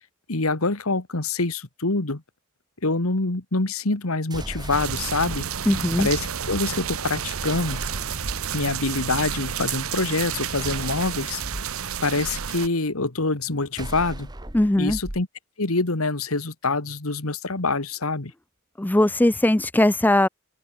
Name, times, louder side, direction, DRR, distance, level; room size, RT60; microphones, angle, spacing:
voice 1, 0.3-2.2 2.8-5.4 6.0-7.8 8.5-11.4 12.0-14.3 14.8-15.3 15.6-18.3, left 3 dB, 85° left, 2.1 m, -25 dB
sound 1, 4.3-5.4 7.4-8.5 10.5-11.6 13.7-15.2, right 1 dB, 20° right, 1.5 m, -36 dB
sound 2, 4.7-12.7, right 8 dB, 80° right, 1.0 m, -30 dB
voice 2, 5.7-6.1 14.5-15.0 18.8-20.3, left 1 dB, 10° left, 0.4 m, -19 dB
head